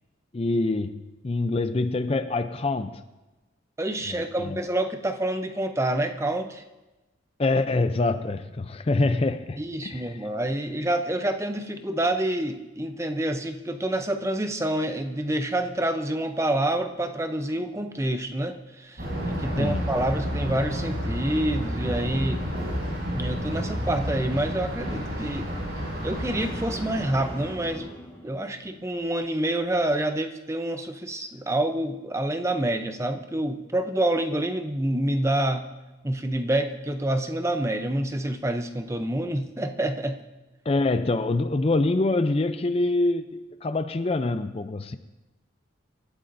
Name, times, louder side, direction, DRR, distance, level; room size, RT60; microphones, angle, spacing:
voice 1, 0.3-3.0 4.1-4.6 7.4-10.1 19.6-19.9 40.7-45.0, left 2 dB, 30° left, 0.4 m, -25 dB
voice 2, 3.8-6.6 9.6-22.5 23.1-25.5 26.0-27.9 28.2-35.7 36.0-40.2, right 1 dB, 15° right, 0.6 m, -27 dB
Thunder, 19.0-27.8, equal, 50° right, 6.0 m, -31 dB
sound 1, 25.8-29.2 29.6-30.0, equal, 10° left, 1.8 m, -45 dB
25.0 x 12.5 x 2.6 m
head